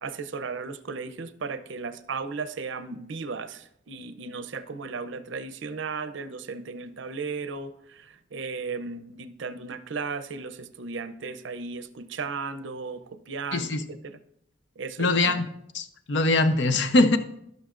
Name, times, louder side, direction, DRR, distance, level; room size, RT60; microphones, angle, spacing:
voice 1, 0.0-14.2 14.8-15.4, right 4 dB, 85° right, 12 dB, 0.6 m, -35 dB
voice 2, 13.5-13.8 15.0-15.5 15.7-17.2, left 2 dB, 65° left, 9 dB, 0.6 m, -22 dB
16.5 x 6.2 x 2.5 m, 0.75 s
head